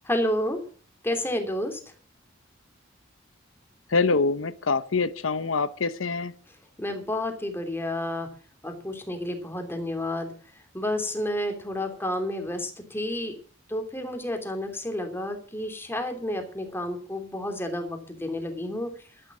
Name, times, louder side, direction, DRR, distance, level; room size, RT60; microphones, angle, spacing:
voice 1, 0.1-0.6 1.0-1.8 6.8-8.3 8.6-10.3 10.7-13.3 13.7-18.9, left 1 dB, 10° left, 3.0 m, -30 dB
voice 2, 3.9-6.3, left 4 dB, 85° left, 0.7 m, -25 dB
12.5 x 11.5 x 6.2 m
head